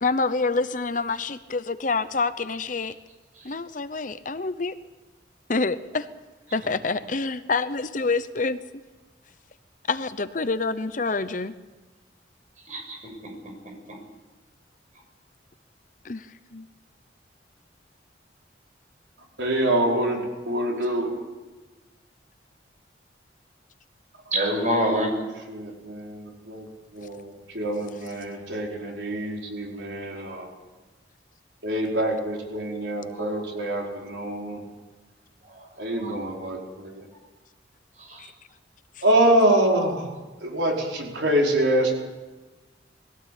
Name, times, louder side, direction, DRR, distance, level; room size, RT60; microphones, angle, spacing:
voice 1, 0.0-3.0 3.4-4.7 5.5-6.1 6.5-8.6 9.9-11.5 16.0-16.3 16.5-16.7 38.2-38.3, left 3 dB, 45° left, 12 dB, 0.8 m, -27 dB
voice 2, 12.7-13.0 24.3-25.1 33.2-33.3 35.6-35.7 36.0-36.1 38.1-38.3, equal, 40° right, 2 dB, 6.9 m, -25 dB
voice 3, 19.4-21.2 25.5-30.5 31.6-34.6 35.8-37.0 39.0-40.1 40.4-42.0, right 1 dB, 75° right, -1 dB, 5.0 m, -25 dB
21.5 x 17.0 x 8.6 m, 1.2 s
head